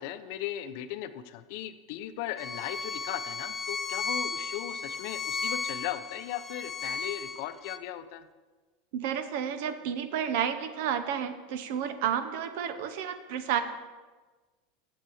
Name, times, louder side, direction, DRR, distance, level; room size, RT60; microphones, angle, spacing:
voice 1, 0.0-8.3, left 12 dB, 60° left, 11 dB, 0.5 m, -37 dB
Bowed string instrument, 2.4-7.8, left 5 dB, 15° left, 0.5 m, -35 dB
voice 2, 8.9-13.6, right 8 dB, 65° right, 10 dB, 0.8 m, -31 dB
7.4 x 5.5 x 7.2 m, 1.3 s
supercardioid pair, 145°, 0 cm